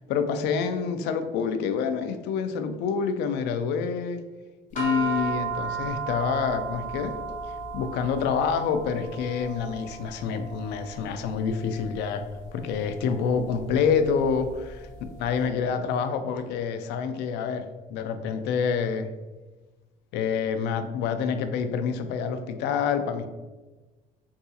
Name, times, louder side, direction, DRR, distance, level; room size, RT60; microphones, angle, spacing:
voice 1, 0.1-4.2 4.7-7.2 7.7-12.3 12.5-14.9 15.2-19.1 20.1-23.3, left 6 dB, 85° left, 9 dB, 0.4 m, -27 dB
sound 1, 4.8-15.2, right 4 dB, 50° left, 1.1 m, -35 dB
4.6 x 2.3 x 2.7 m, 1.2 s
cardioid pair, 110°, 17 cm